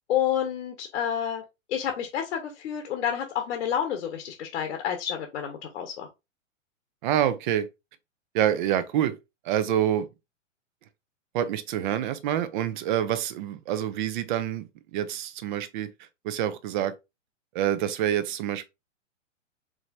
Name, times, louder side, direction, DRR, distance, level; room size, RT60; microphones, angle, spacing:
voice 1, 0.1-1.4 1.7-6.1, left 9 dB, 60° left, 1.1 m, -29 dB
voice 2, 7.0-7.7 8.3-9.2 9.4-10.1 11.3-14.7 14.9-15.9 16.2-16.9 17.5-18.6, right 11 dB, 40° right, 0.6 m, -26 dB
4.9 x 3.1 x 2.5 m
hypercardioid pair, 120°, 38 cm